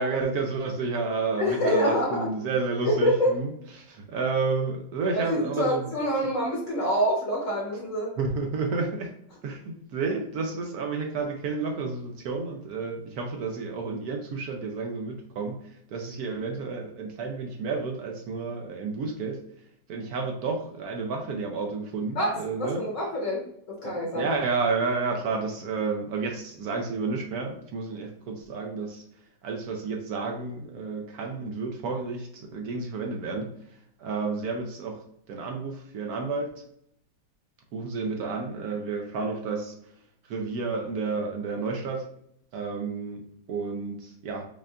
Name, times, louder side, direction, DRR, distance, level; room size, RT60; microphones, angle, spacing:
voice 1, 0.0-5.9 8.2-9.1 9.4-19.4 19.9-22.9 23.8-29.0 29.4-36.6 37.7-39.9 40.2-42.1 42.5-43.2 43.5-44.4, right 4 dB, 70° right, 2 dB, 1.0 m, -31 dB
voice 2, 1.4-2.3 2.8-3.3 5.1-8.1 22.1-24.3, equal, 55° left, -3 dB, 1.1 m, -26 dB
5.4 x 2.4 x 2.3 m, 0.71 s
omnidirectional pair, 1.9 m